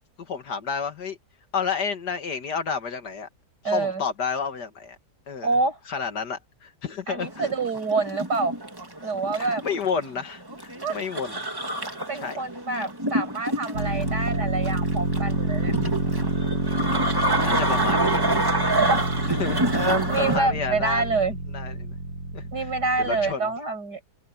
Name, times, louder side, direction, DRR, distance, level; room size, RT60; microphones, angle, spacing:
voice 1, 0.2-1.2 1.5-3.3 3.6-5.0 5.3-5.5 5.9-7.5 9.4-11.5 12.1-12.4 17.4-18.5 19.3-21.1 21.5-21.9 22.3-22.5 23.0-23.5, left 6 dB, 85° left, 2.5 m, -31 dB
voice 2, 3.6-4.0 5.4-5.8 7.1-8.6 9.0-9.6 10.8-11.0 12.1-15.7 18.9-19.2 20.1-21.4 22.5-24.1, right 3 dB, 90° right, 6.8 m, -27 dB
sound 1, 7.2-20.4, right 1 dB, 15° right, 2.0 m, -27 dB
sound 2, 13.7-23.3, right 2 dB, 75° right, 7.7 m, -28 dB
open air
omnidirectional pair, 1.7 m